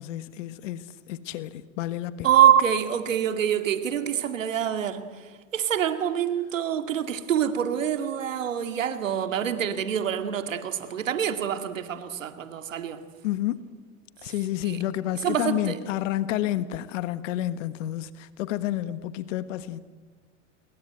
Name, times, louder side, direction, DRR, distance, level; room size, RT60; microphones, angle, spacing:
voice 1, 0.0-2.3 13.2-13.7 14.2-19.8, left 13 dB, 75° left, 1.4 m, -30 dB
voice 2, 2.2-5.1 5.5-13.0 14.6-14.8 15.2-15.8, right 9 dB, 90° right, 2.3 m, -25 dB
29.0 x 22.0 x 9.0 m
hypercardioid pair, 90°, 38 cm